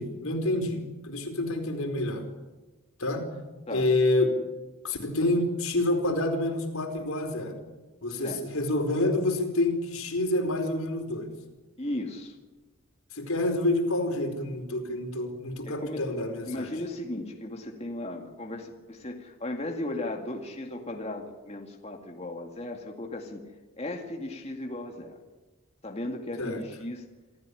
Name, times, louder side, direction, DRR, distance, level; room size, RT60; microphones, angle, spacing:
voice 1, 0.0-2.2 3.0-3.3 3.7-4.3 4.8-7.6 8.0-11.3 13.1-16.7 26.4-26.6, left 2 dB, 85° left, 4 dB, 4.7 m, -28 dB
voice 2, 11.8-12.4 15.6-16.1 16.5-23.4 23.8-25.2 25.8-27.1, left 1 dB, 30° left, 2 dB, 2.3 m, -36 dB
27.5 x 14.0 x 9.9 m, 1.2 s
head